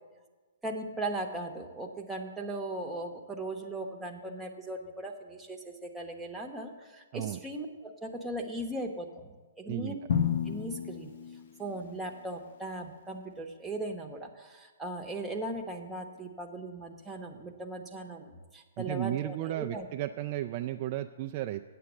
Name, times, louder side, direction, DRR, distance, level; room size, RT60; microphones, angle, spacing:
voice 1, 0.6-10.0 10.5-11.1 11.6-19.8, right 1 dB, 5° right, 1 dB, 1.0 m, -38 dB
Drum, 10.1-12.1, left 8 dB, 60° left, 0.9 m, -32 dB
voice 2, 18.8-21.6, right 14 dB, 35° right, 6 dB, 0.3 m, -34 dB
8.5 x 7.6 x 7.1 m, 1.3 s
hypercardioid pair, 145°, 0 cm